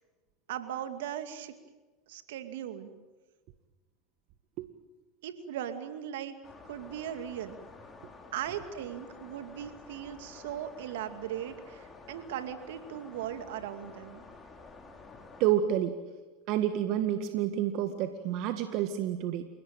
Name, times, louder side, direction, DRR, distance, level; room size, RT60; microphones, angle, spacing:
voice 1, 0.5-1.5 2.1-2.9 5.2-6.4 6.6-7.6 8.3-14.2, right 10 dB, 75° right, 9 dB, 2.4 m, -38 dB
sound 1, 6.4-15.5, left 3 dB, 20° left, 5.1 m, -51 dB
voice 2, 15.4-16.0 16.5-19.4, right 11 dB, 55° right, 8 dB, 1.8 m, -29 dB
29.5 x 18.0 x 9.0 m, 1.2 s
hypercardioid pair, 90°, 0 cm